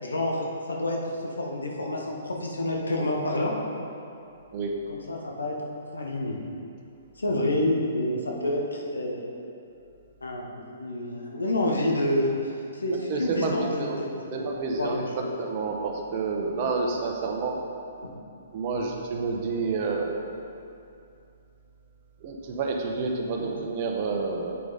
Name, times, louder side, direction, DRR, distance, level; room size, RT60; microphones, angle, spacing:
voice 1, 0.0-1.0 1.4-3.5 4.9-5.5 5.9-6.5 7.2-9.3 10.2-12.3 12.7-14.5 14.8-15.3 23.4-23.6, left 1 dB, 90° left, -1 dB, 1.2 m, -28 dB
voice 2, 12.9-14.0 14.3-17.6 18.5-20.2 22.2-24.6, right 4 dB, 45° right, 1 dB, 0.9 m, -29 dB
8.2 x 4.9 x 4.1 m, 2.6 s
hypercardioid pair, 135°, 0 cm